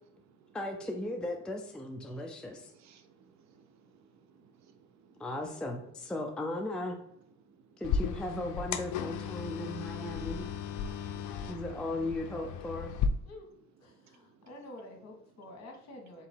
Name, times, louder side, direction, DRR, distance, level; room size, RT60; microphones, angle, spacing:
voice 1, 0.5-2.7 5.2-7.0 7.8-10.5 11.5-12.9, left 1 dB, 5° left, 1 dB, 0.5 m, -37 dB
voice 2, 2.7-5.1 7.4-7.8 10.9-11.3 14.1-14.2, right 6 dB, 60° right, 7 dB, 0.6 m, -62 dB
sound 1, 7.8-13.1, left 7 dB, 75° left, 0.5 m, -35 dB
voice 3, 13.8-16.3, left 1 dB, 55° left, 1 dB, 1.4 m, -49 dB
3.9 x 2.9 x 4.4 m, 0.75 s
cardioid pair, 120°, 31 cm